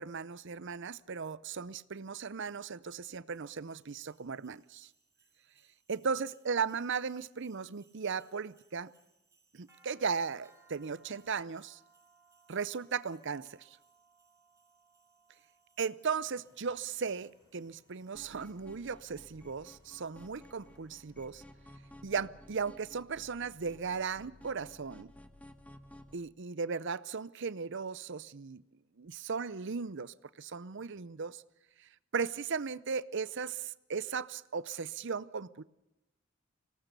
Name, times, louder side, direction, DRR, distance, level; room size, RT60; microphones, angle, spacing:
voice 1, 0.0-4.9 5.9-8.9 9.5-11.8 12.5-13.8 15.8-21.4 22.0-25.1 26.1-28.6 29.0-31.4 31.8-35.6, right 5 dB, 60° right, 0.7 m, -37 dB
sound 1, 3.3-21.0, right 3 dB, 15° right, 5.2 m, -69 dB
Vehicle, 16.2-21.9, left 1 dB, 75° left, 5.8 m, -70 dB
sound 2, 18.1-26.1, left 1 dB, 5° left, 1.2 m, -55 dB
24.5 x 18.0 x 6.8 m
head